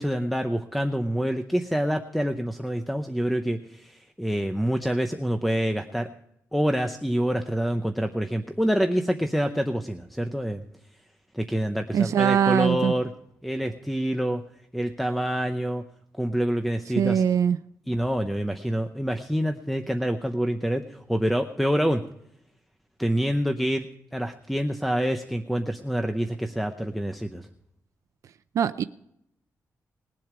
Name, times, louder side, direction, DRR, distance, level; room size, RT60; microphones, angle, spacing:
voice 1, 0.0-6.1 6.5-10.6 11.3-13.1 13.4-14.4 14.7-15.8 16.1-17.2 17.9-22.0 23.0-23.9 24.1-27.5, equal, ahead, 4 dB, 0.7 m, -26 dB
voice 2, 11.9-12.9 17.0-17.6 28.5-28.8, right 8 dB, 65° right, 12 dB, 0.5 m, -22 dB
20.5 x 7.7 x 4.9 m, 0.78 s
wide cardioid pair, 155°, 6 cm